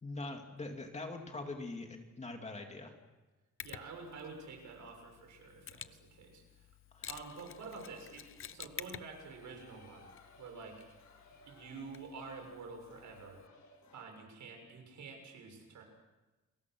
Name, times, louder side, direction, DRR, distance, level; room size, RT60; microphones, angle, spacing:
voice 1, 0.0-2.9 6.9-7.1, left 2 dB, 25° left, 3 dB, 2.6 m, -43 dB
Mechanisms, 3.6-13.5, left 9 dB, 45° left, 0.7 m, -52 dB
voice 2, 3.6-6.7 7.1-10.1 10.4-10.8 11.5-13.4 13.9-15.8, right 4 dB, 80° right, 3 dB, 6.9 m, -48 dB
sound 1, 7.2-14.0, left 2 dB, 85° left, 6.8 m, -62 dB
29.5 x 23.0 x 6.3 m, 1.1 s
wide cardioid pair, 175°, 29 cm